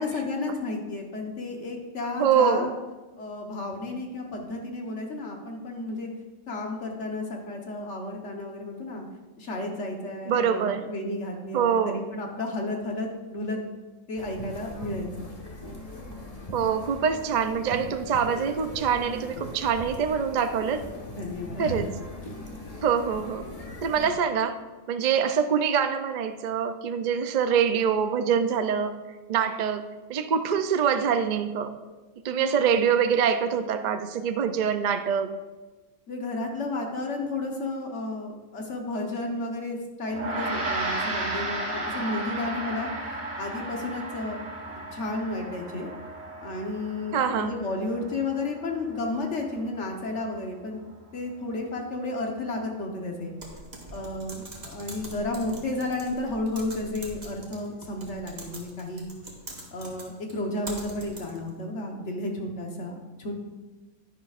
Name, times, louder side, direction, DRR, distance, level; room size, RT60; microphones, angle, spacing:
voice 1, 0.0-2.7 3.2-6.1 6.5-9.1 9.4-13.6 14.1-15.3 21.2-21.8 32.4-32.6 36.1-42.9 43.4-44.4 44.7-45.9 46.4-50.8 51.1-53.3 53.9-59.1 59.7-63.3, left 2 dB, 60° left, 1 dB, 1.4 m, -32 dB
voice 2, 2.2-2.8 10.3-10.8 11.5-12.0 16.5-20.8 21.6-21.9 22.8-23.4 23.8-24.6 24.9-29.0 29.3-31.8 32.2-35.3 47.1-47.5, right 7 dB, 60° right, 8 dB, 0.4 m, -25 dB
sound 1, 14.2-24.1, left 1 dB, 30° left, 1.3 m, -40 dB
Gong, 40.1-49.7, right 2 dB, 80° right, 2.0 m, -34 dB
Typing, 53.4-61.5, right 1 dB, 35° right, 1.5 m, -43 dB
10.5 x 10.0 x 2.4 m, 1.2 s
omnidirectional pair, 1.3 m